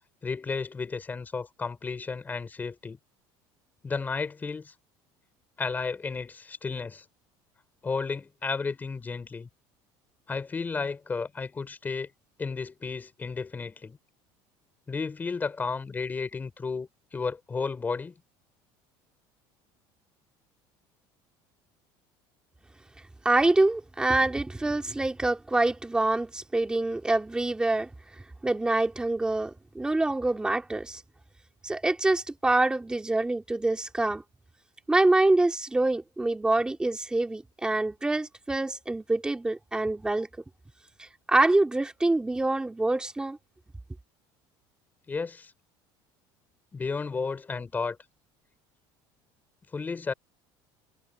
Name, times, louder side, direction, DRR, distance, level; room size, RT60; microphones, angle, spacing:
voice 1, 0.2-3.0 3.8-4.7 5.6-7.0 7.8-9.5 10.3-12.1 12.4-14.0 14.9-18.1 45.1-45.5 46.7-48.0 49.7-50.1, left 4 dB, 15° left, 4.8 m, -33 dB
voice 2, 23.2-27.9 28.4-31.0 31.6-34.2 34.9-40.3 41.3-43.4, right 2 dB, 10° right, 2.9 m, -25 dB
cardioid pair, 150°, 10 cm